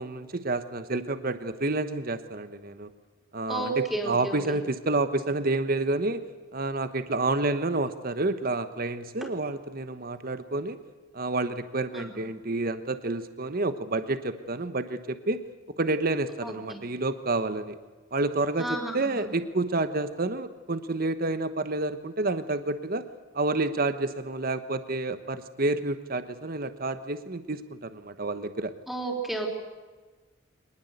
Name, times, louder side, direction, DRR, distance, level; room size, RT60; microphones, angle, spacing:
voice 1, 0.0-2.9 3.3-6.2 6.5-10.8 11.1-15.4 15.8-17.8 18.1-23.0 23.3-28.7, right 2 dB, 45° right, 11 dB, 1.1 m, -29 dB
voice 2, 3.5-4.4 9.2-9.3 11.9-12.2 16.4-16.8 18.6-19.3 28.9-29.5, right 2 dB, ahead, 0 dB, 4.1 m, -32 dB
24.5 x 20.0 x 8.1 m, 1.3 s
head